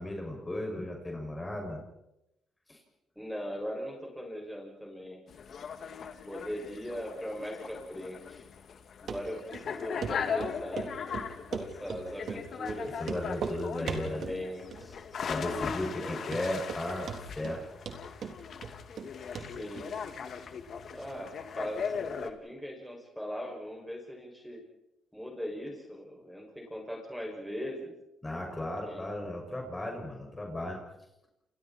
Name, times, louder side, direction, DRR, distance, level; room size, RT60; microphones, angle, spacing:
voice 1, 0.0-1.8 2.7-2.8 13.0-14.3 15.3-17.6 28.2-30.8, left 1 dB, 20° left, 1 dB, 6.5 m, -35 dB
voice 2, 3.1-5.2 6.3-8.4 9.0-10.9 11.5-13.0 13.7-15.0 15.4-16.3 19.4-19.9 20.9-24.6 25.1-27.9 28.8-29.1, equal, ahead, 0 dB, 6.7 m, -40 dB
sound 1, 5.3-22.3, left 6 dB, 60° left, 2.3 m, -39 dB
Run, 9.1-9.2 9.5-9.6 10.0-10.1 10.4-10.9 11.1-12.0 12.3-12.4 12.7-12.8 13.0-13.6 13.9-14.4 14.7-15.2 15.4-15.5 16.0-16.1 16.3-16.8 17.1-17.6 17.9-19.1 19.4-19.5 19.8-19.9, right 6 dB, 60° right, 3.6 m, -37 dB
29.0 x 28.5 x 4.5 m, 0.88 s
cardioid pair, 90°, 0 cm